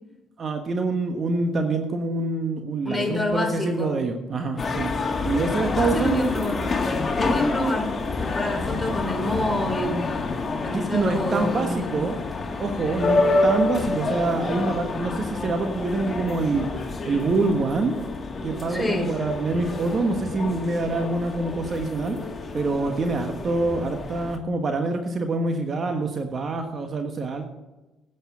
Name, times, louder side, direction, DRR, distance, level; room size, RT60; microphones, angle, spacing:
voice 1, 0.4-4.9 5.2-6.3 10.7-12.2 12.6-13.2 13.4-16.7 17.0-18.0 18.4-22.2 22.5-27.5, right 3 dB, 45° right, 5 dB, 1.4 m, -25 dB
voice 2, 2.8-4.0 5.6-6.8 7.1-10.1 10.6-12.1 18.7-19.1, left 1 dB, 10° left, 1 dB, 4.6 m, -27 dB
sound 1, 4.6-24.4, left 3 dB, 30° left, 2.2 m, -28 dB
10.0 x 8.4 x 7.3 m, 1.1 s
supercardioid pair, 70°, 0 cm